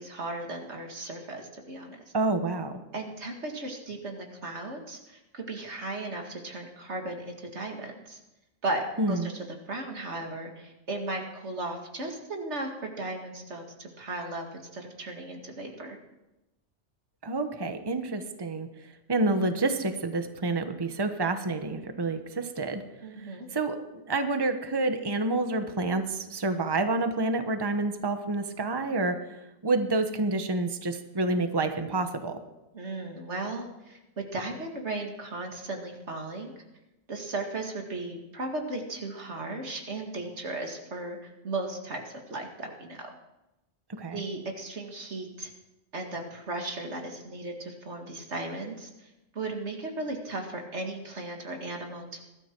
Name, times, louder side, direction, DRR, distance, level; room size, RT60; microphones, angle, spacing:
voice 1, 0.0-2.0 2.9-8.2 8.6-16.0 23.0-23.5 32.7-36.5 37.1-43.1 44.1-45.5 45.9-52.2, right 2 dB, 75° right, 2 dB, 2.3 m, -36 dB
voice 2, 2.1-2.7 9.0-9.3 17.2-22.8 23.2-32.4 43.9-44.2, right 2 dB, 20° right, 7 dB, 1.1 m, -28 dB
21.5 x 13.0 x 4.6 m, 0.99 s
omnidirectional pair, 1.2 m